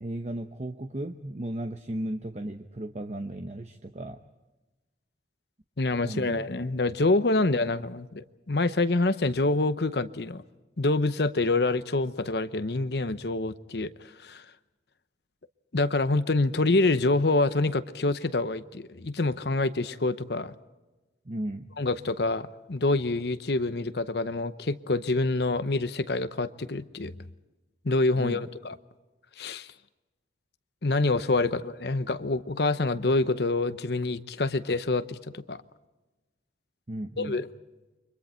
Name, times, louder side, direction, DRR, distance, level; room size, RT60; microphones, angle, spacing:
voice 1, 0.0-4.2 6.0-6.4 21.3-21.7 28.2-28.4 36.9-37.4, right 1 dB, 40° right, 7 dB, 0.9 m, -35 dB
voice 2, 5.8-10.4 10.8-14.5 15.7-20.6 21.8-27.3 27.8-28.8 29.4-29.7 30.8-35.6 37.2-37.5, left 2 dB, 60° left, 12 dB, 0.8 m, -26 dB
30.0 x 24.5 x 4.4 m, 1.1 s
head